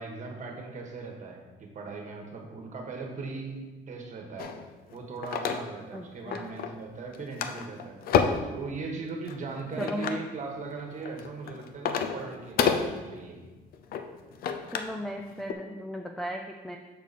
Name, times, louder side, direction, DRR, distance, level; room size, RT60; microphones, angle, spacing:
voice 1, 0.0-3.5 3.9-4.5 4.9-8.0 8.5-13.4, right 4 dB, 45° right, 2 dB, 1.3 m, -39 dB
sound 1, 4.4-6.0 6.3-6.8 7.1-8.5 9.2-10.2 10.9-15.0 15.3-15.5, left 6 dB, 60° left, 0.5 m, -30 dB
voice 2, 5.9-6.5 9.8-10.2 14.7-16.8, equal, ahead, 2 dB, 0.4 m, -36 dB
6.5 x 4.9 x 4.1 m, 1.2 s
cardioid pair, 110°, 17 cm